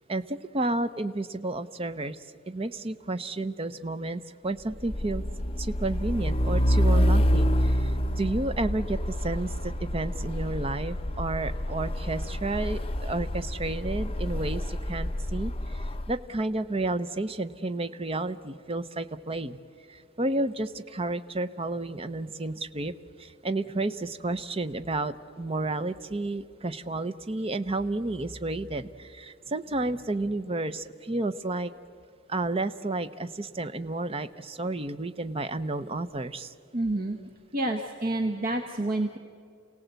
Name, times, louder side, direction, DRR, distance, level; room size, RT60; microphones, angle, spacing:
voice 1, 0.1-2.2 2.5-5.2 5.6-19.6 19.9-22.9 23.2-31.7 32.3-36.5, right 2 dB, 30° right, 11 dB, 0.7 m, -31 dB
Truck, 4.7-16.1, equal, 30° left, 0.8 m, -27 dB
voice 2, 36.7-37.2 37.5-39.2, right 1 dB, 45° right, 4 dB, 1.2 m, -28 dB
29.0 x 17.5 x 8.1 m, 2.2 s
head